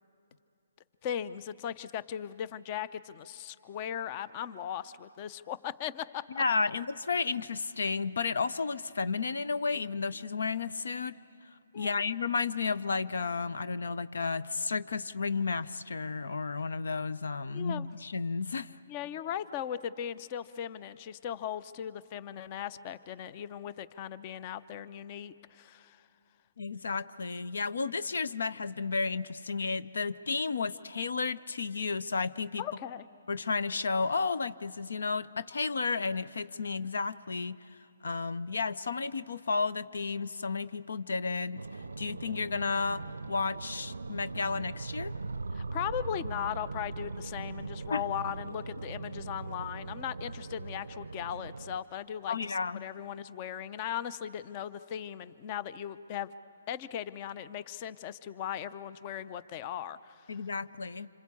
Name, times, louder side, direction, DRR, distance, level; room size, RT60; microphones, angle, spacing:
voice 1, 1.0-6.4 11.7-12.0 17.5-17.9 18.9-26.0 32.6-33.0 45.5-52.5 52.8-56.3 56.7-60.1, left 10 dB, 35° left, 16 dB, 0.6 m, -38 dB
voice 2, 6.3-11.2 11.7-18.7 26.6-32.6 33.3-37.6 38.0-41.7 42.0-45.1 47.9-48.0 52.3-52.8 60.3-61.1, left 4 dB, 75° left, 15 dB, 0.6 m, -32 dB
sound 1, 41.5-51.8, right 3 dB, 85° right, 0.5 m, -40 dB
26.5 x 25.5 x 8.4 m, 2.7 s
hypercardioid pair, 140°, 0 cm